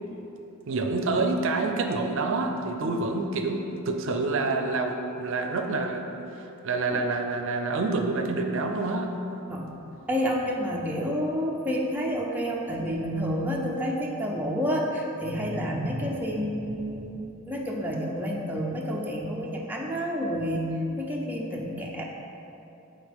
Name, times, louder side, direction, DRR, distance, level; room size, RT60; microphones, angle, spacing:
voice 1, 0.7-6.1 6.6-9.1, right 3 dB, 65° right, 4 dB, 0.5 m, -27 dB
voice 2, 10.1-22.0, equal, 10° right, -2 dB, 0.5 m, -29 dB
7.9 x 4.0 x 3.5 m, 2.9 s
head